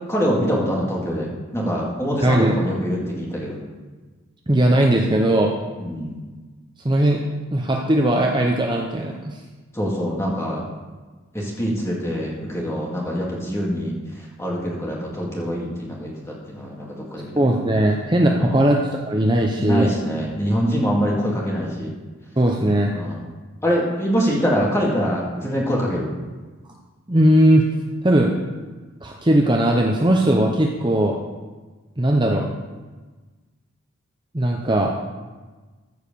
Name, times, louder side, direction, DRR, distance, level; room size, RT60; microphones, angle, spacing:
voice 1, 0.1-3.6 5.8-6.2 9.7-10.6 11.3-13.9 14.4-17.4 18.4-18.6 19.6-21.9 22.9-23.2 23.6-26.1, equal, 15° left, -3 dB, 2.1 m, -24 dB
voice 2, 2.2-2.5 4.5-5.5 6.8-7.2 7.5-9.4 17.4-19.9 22.4-22.9 27.1-27.7 28.0-28.3 29.0-31.1 32.0-32.4 34.3-34.9, right 1 dB, 20° right, 0 dB, 0.7 m, -18 dB
14.5 x 4.9 x 6.9 m, 1.3 s
head